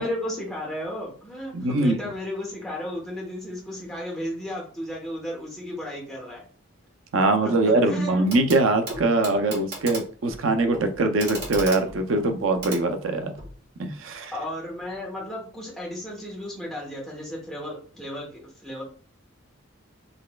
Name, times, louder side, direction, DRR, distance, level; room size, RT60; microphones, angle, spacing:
voice 1, 0.0-6.4 7.4-7.5 7.8-8.3 14.3-18.8, left 1 dB, ahead, -4 dB, 0.9 m, -34 dB
voice 2, 1.5-2.0 7.1-13.3 13.8-14.3, right 2 dB, 75° right, 7 dB, 0.5 m, -22 dB
Clock, 8.3-8.6 8.9-13.6 14.8-14.9, right 2 dB, 55° right, 1.4 m, -37 dB
4.0 x 3.2 x 2.2 m, 0.41 s
head